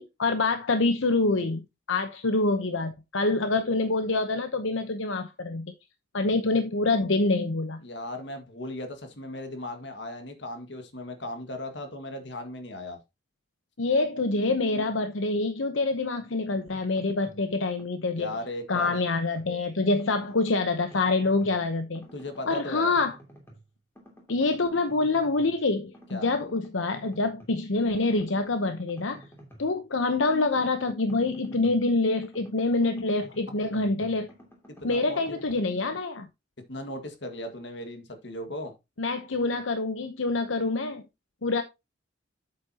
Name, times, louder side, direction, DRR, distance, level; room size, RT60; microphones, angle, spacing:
voice 1, 0.0-5.7 6.1-7.8 13.8-18.3 18.7-22.1 22.5-23.1 24.3-29.2 29.6-34.3 34.8-36.3 39.0-41.0 41.4-41.6, left 3 dB, 80° left, 0.9 m, -26 dB
voice 2, 7.8-13.0 18.2-19.0 22.1-23.0 26.1-26.3 34.8-35.4 36.7-38.7, left 1 dB, 65° left, 1.9 m, -37 dB
sound 1, 16.5-17.5 17.8-19.5 19.9-21.7 21.9-23.7 24.0-25.5 25.9-27.6 27.9-31.9 32.2-35.6, equal, 10° left, 2.6 m, -52 dB
8.4 x 7.9 x 2.9 m
head